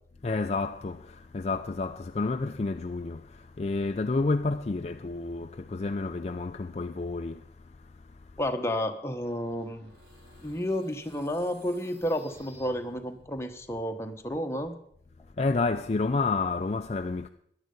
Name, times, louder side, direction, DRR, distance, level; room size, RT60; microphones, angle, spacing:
voice 1, 0.2-3.2 3.6-7.4 15.4-17.3, left 3 dB, 35° left, 0.4 m, -29 dB
voice 2, 8.4-9.9 10.4-14.7, equal, 15° left, 1.0 m, -31 dB
sound 1, 9.2-13.4, right 1 dB, 70° right, 4.4 m, -55 dB
14.5 x 10.5 x 5.3 m
head